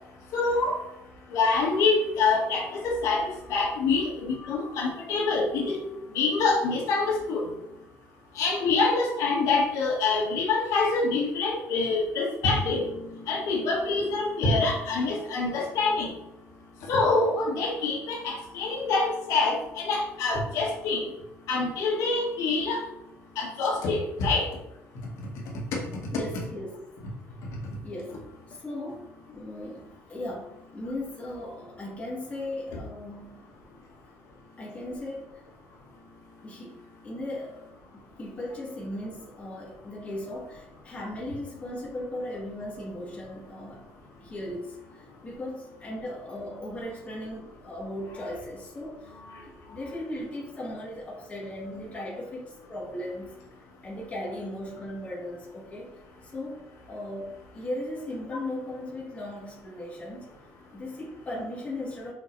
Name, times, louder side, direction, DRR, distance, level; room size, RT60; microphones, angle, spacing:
voice 1, 0.3-0.8 1.3-5.8 6.1-7.5 8.4-16.1 16.9-21.1 21.5-22.8 23.4-24.5 49.2-49.3, left 3 dB, 75° left, -3 dB, 2.1 m, -26 dB
voice 2, 26.1-26.8 27.8-28.2 28.5-33.5 34.6-35.4 36.4-36.8 37.0-37.6 38.0-43.8 44.2-53.3 53.8-60.3 60.7-62.1, left 1 dB, 25° left, -4 dB, 2.2 m, -37 dB
6.3 x 5.6 x 3.4 m, 0.85 s
cardioid pair, 135°, 6 cm